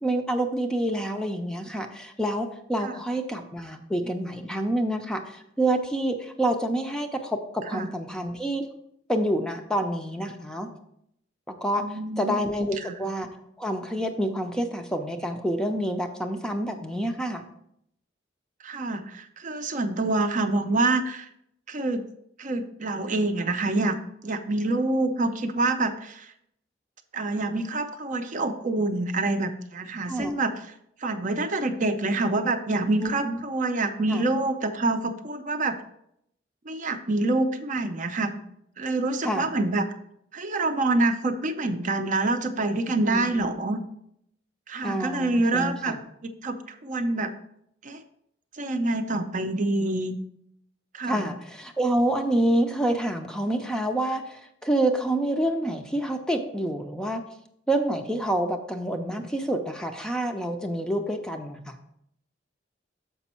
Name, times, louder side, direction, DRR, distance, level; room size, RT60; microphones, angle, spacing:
voice 1, 0.0-8.7 9.1-10.7 11.5-13.3 13.6-17.5 30.1-30.4 33.0-33.4 34.1-34.3 39.2-39.5 43.1-43.5 44.8-46.0 51.0-57.2 57.7-61.8, right 1 dB, 5° left, 5 dB, 0.5 m, -27 dB
voice 2, 11.8-12.4 12.8-13.0 18.6-21.3 21.7-22.0 22.4-24.0 24.2-26.3 27.1-30.5 31.0-35.7 36.7-38.4 38.8-39.9 40.3-43.8 44.7-46.0 46.4-47.3 47.8-48.0 48.5-50.2 50.9-51.3, right 2 dB, 40° right, 7 dB, 0.5 m, -26 dB
7.0 x 5.2 x 4.3 m, 0.74 s
head